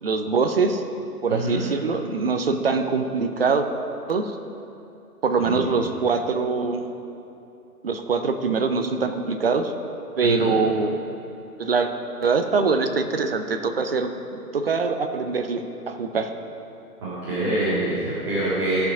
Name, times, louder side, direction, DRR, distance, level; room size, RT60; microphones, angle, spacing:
voice 1, 0.0-0.8 1.2-3.7 4.1-4.4 5.2-6.8 7.8-9.7 10.2-11.0 11.6-11.9 12.2-16.3, right 4 dB, 40° right, 7 dB, 0.6 m, -23 dB
voice 2, 1.3-1.6 5.4-5.7 10.2-10.5 17.0-18.8, right 1 dB, 20° right, -12 dB, 2.4 m, -26 dB
15.0 x 6.0 x 4.9 m, 2.8 s
figure-of-eight pair, 150°, 47 cm